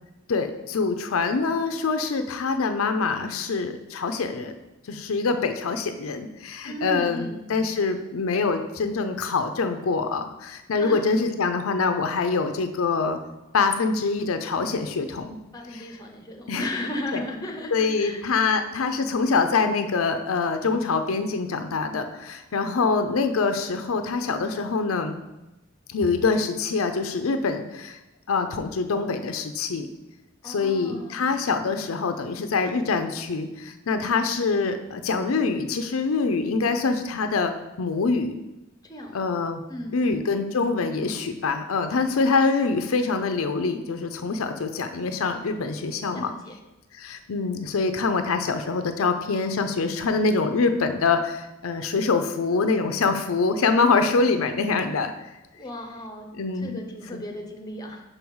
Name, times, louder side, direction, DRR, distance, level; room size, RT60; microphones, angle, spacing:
voice 1, 0.3-4.5 4.9-13.2 13.5-15.4 15.7-15.9 16.5-16.7 17.1-17.2 17.7-25.2 25.9-28.0 28.3-29.9 30.4-38.4 39.1-39.6 39.9-46.3 47.0-55.1 56.3-56.9 57.1-57.2, left 4 dB, 90° left, 7 dB, 0.5 m, -25 dB
voice 2, 6.7-7.4 10.8-11.0 15.5-18.2 30.4-31.4 38.9-39.3 39.7-40.2 46.1-46.6 55.5-56.3 56.5-58.0, left 1 dB, 20° left, 2 dB, 0.9 m, -35 dB
5.5 x 4.6 x 5.4 m, 0.98 s
head